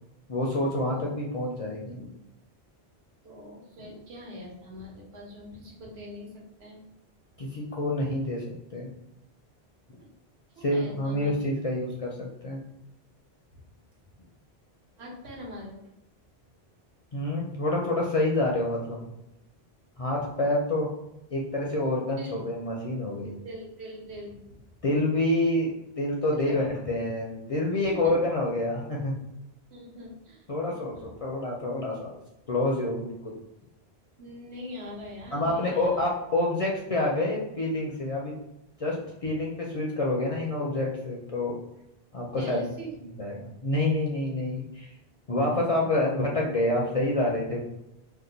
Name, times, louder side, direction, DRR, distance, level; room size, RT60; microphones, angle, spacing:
voice 1, 0.3-2.1 7.4-8.9 10.6-12.6 17.1-19.1 20.0-20.9 21.3-23.3 24.8-29.2 30.5-32.2 32.5-33.3 35.3-38.3 38.8-41.6 42.1-42.6 43.0-44.9 45.3-47.6, left 1 dB, 50° left, -3 dB, 0.4 m, -28 dB
voice 2, 3.2-6.3 6.6-6.8 7.3-7.4 10.0-10.1 10.6-11.3 13.5-13.6 15.0-15.8 22.2-22.4 23.4-24.6 26.4-26.5 27.8-28.2 29.7-31.1 34.2-36.0 42.4-42.9, equal, 80° right, -4 dB, 1.2 m, -42 dB
2.8 x 2.2 x 3.8 m, 0.88 s
omnidirectional pair, 1.1 m